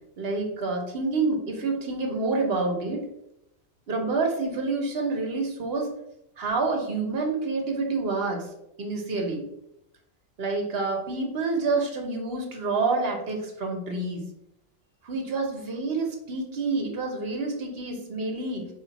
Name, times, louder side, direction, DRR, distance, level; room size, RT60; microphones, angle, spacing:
voice 1, 0.2-3.1 3.9-5.9 6.4-8.5 8.8-9.4 10.4-14.2 15.0-18.7, right 3 dB, 70° right, 2 dB, 1.1 m, -28 dB
5.0 x 2.5 x 4.0 m, 0.82 s
omnidirectional pair, 1.1 m